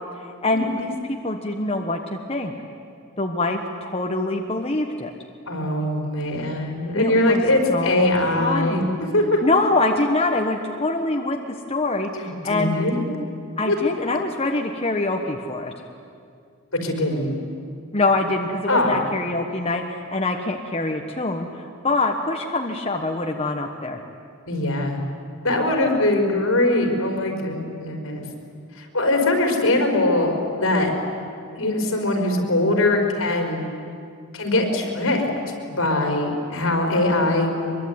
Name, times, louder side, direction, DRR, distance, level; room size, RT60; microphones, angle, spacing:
voice 1, 0.1-0.9 1.2-2.5 3.2-5.1 6.9-7.4 7.7-8.1 8.4-9.0 9.4-12.7 13.6-15.7 17.9-24.0, left 2 dB, 30° left, 2 dB, 1.3 m, -24 dB
voice 2, 5.5-9.4 12.2-13.0 13.7-13.8 16.7-17.3 18.7-19.0 24.5-25.0 25.4-28.2 28.8-30.9 31.6-33.6 34.3-35.3 35.7-37.8, left 1 dB, 75° left, 3 dB, 4.9 m, -22 dB
23.5 x 23.0 x 9.6 m, 2.3 s
head